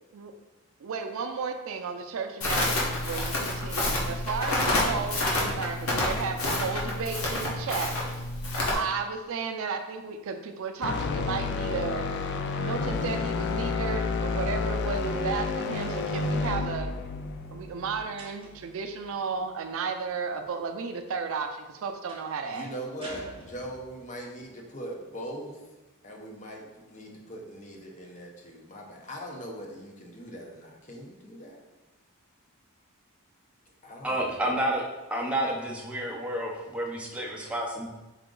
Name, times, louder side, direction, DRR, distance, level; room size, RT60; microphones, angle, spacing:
voice 1, 0.8-8.0 8.7-16.9 17.5-22.7, right 5 dB, 60° right, 6 dB, 0.4 m, -34 dB
Crackle, 2.4-8.7, left 1 dB, 70° left, 1.1 m, -28 dB
sound 1, 10.8-19.0, left 4 dB, 50° left, 0.4 m, -30 dB
sound 2, 18.2-18.8 22.1-22.4 23.0-24.1, right 1 dB, 25° right, 0.9 m, -45 dB
voice 2, 22.4-25.7 26.0-31.6 33.8-34.5, right 1 dB, 35° left, 0 dB, 0.7 m, -41 dB
voice 3, 34.0-34.8 35.1-37.9, right 1 dB, 5° right, -1 dB, 0.6 m, -30 dB
4.9 x 2.9 x 3.7 m, 1.1 s
head